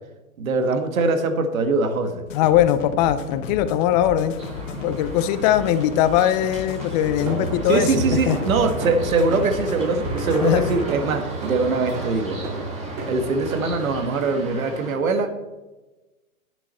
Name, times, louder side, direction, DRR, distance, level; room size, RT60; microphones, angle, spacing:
voice 1, 0.4-2.2 7.7-12.4 13.1-15.3, right 3 dB, 75° right, 8 dB, 1.7 m, -22 dB
sound 1, 2.3-10.9, left 4 dB, 65° left, 2.0 m, -35 dB
voice 2, 2.3-4.4 4.8-8.4 10.4-10.7, left 11 dB, 30° left, 12 dB, 0.7 m, -20 dB
sound 2, 4.4-15.0, right 2 dB, 15° right, 3.0 m, -38 dB
sound 3, 7.0-13.9, right 2 dB, 40° right, 4.1 m, -31 dB
10.0 x 9.9 x 4.3 m, 1.1 s
hypercardioid pair, 135°, 41 cm